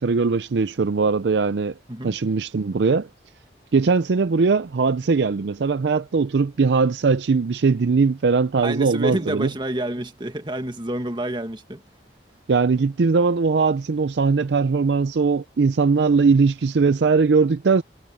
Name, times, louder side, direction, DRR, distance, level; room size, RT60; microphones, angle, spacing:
voice 1, 0.0-1.7 2.0-3.1 3.7-9.5 12.5-17.8, right 4 dB, 75° right, 0.5 m, -20 dB
voice 2, 8.6-11.8, right 1 dB, 25° right, 1.9 m, -28 dB
head